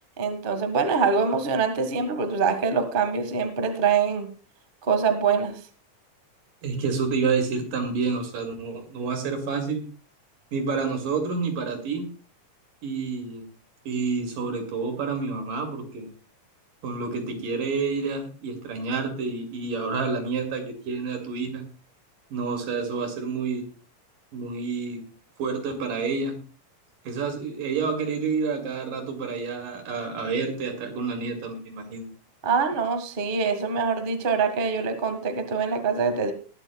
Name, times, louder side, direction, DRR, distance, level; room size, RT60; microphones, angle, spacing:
voice 1, 0.2-4.3 4.8-5.5 32.4-36.3, right 5 dB, 40° right, 7 dB, 0.7 m, -24 dB
voice 2, 6.6-9.8 10.5-12.1 12.8-13.4 13.9-16.1 16.8-21.6 22.3-23.6 24.3-25.0 25.4-26.4 27.1-32.1, right 4 dB, 75° right, 5 dB, 3.9 m, -29 dB
20.5 x 12.0 x 2.3 m, 0.35 s
omnidirectional pair, 3.9 m